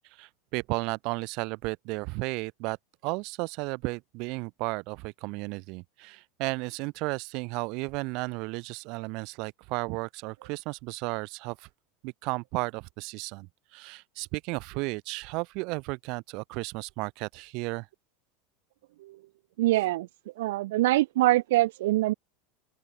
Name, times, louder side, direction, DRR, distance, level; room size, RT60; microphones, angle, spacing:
voice 1, 0.2-2.8 3.0-11.7 12.0-17.9, right 27 dB, 55° right, 5.4 m, -34 dB
voice 2, 19.6-20.1 20.4-22.1, right 17 dB, 80° right, 0.7 m, -24 dB
open air
supercardioid pair, 130°, 0 cm